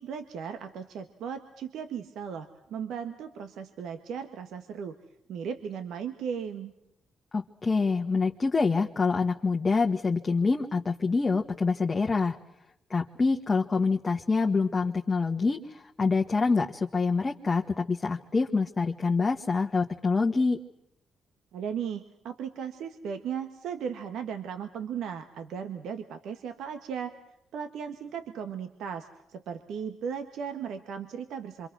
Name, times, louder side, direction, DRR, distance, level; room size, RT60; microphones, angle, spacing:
voice 1, 0.0-5.0 5.3-6.7 21.5-27.1 27.5-31.7, right 7 dB, 75° right, 8 dB, 1.6 m, -36 dB
voice 2, 7.3-12.4 12.9-20.6, left 4 dB, 30° left, 2 dB, 1.4 m, -26 dB
26.5 x 25.5 x 6.2 m, 0.84 s
cardioid pair, 90°, 0 cm